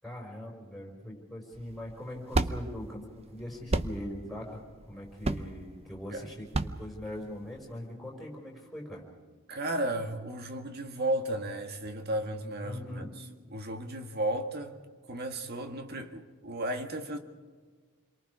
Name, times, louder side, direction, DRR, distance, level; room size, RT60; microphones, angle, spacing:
voice 1, 0.0-4.6 4.9-9.0 12.6-13.1, left 1 dB, ahead, 5.1 m, -41 dB
sound 1, 1.5-7.7, right 2 dB, 30° right, 0.7 m, -33 dB
voice 2, 9.5-13.2 13.5-14.8 15.1-17.2, right 1 dB, 50° right, 1.7 m, -34 dB
28.5 x 23.0 x 4.8 m
head